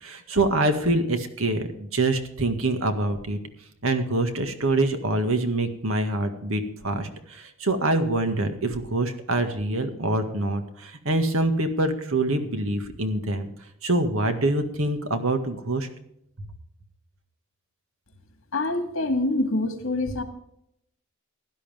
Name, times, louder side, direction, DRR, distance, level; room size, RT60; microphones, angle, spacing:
voice 1, 0.0-3.4 3.8-13.5 13.8-15.9, right 2 dB, 75° right, 7 dB, 1.8 m, -25 dB
voice 2, 18.5-20.2, left 2 dB, 70° left, 7 dB, 2.0 m, -25 dB
16.5 x 11.5 x 3.6 m, 0.75 s
head